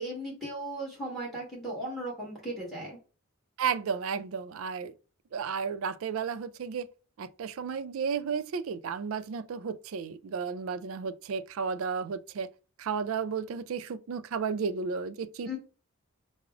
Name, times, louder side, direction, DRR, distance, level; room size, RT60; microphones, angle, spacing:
voice 1, 0.0-3.0 15.4-15.6, right 1 dB, ahead, 1.4 m, -36 dB
voice 2, 3.6-4.9 5.3-6.9 7.2-12.5 12.8-15.5, right 6 dB, 70° right, 0.4 m, -33 dB
5.8 x 2.0 x 2.5 m
head